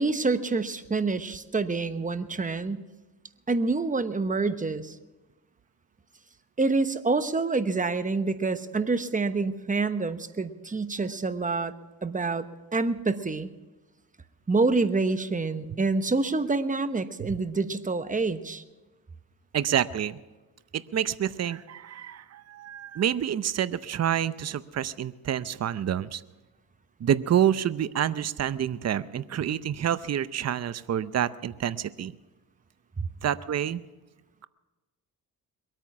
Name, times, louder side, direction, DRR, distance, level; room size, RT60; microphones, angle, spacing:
voice 1, 0.0-2.8 3.5-5.0 6.6-11.7 12.0-13.5 14.5-18.6 33.0-33.1, right 3 dB, 20° right, 11 dB, 1.0 m, -27 dB
voice 2, 19.5-20.2 20.7-26.2 27.0-32.1 33.2-33.8, right 10 dB, 45° right, 15 dB, 0.7 m, -28 dB
22.5 x 9.0 x 6.1 m, 1.2 s
cardioid pair, 70°, 37 cm